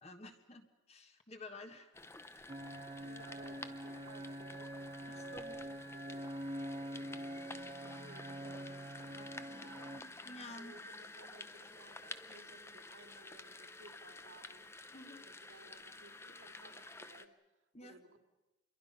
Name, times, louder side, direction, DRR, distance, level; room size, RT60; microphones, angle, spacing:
voice 1, 0.0-2.0 2.3-2.5 5.1-5.6 10.2-10.8 14.9-15.3 17.7-18.0, left 2 dB, 30° left, 6 dB, 1.5 m, -51 dB
sound 1, 1.9-17.3, left 2 dB, 10° left, 0.7 m, -51 dB
sound 2, 2.5-10.0, right 1 dB, 25° right, 0.8 m, -45 dB
voice 2, 2.9-10.3 10.6-14.7 15.2-18.2, right 2 dB, 70° right, 5 dB, 2.5 m, -60 dB
27.5 x 23.0 x 5.6 m, 1.1 s
head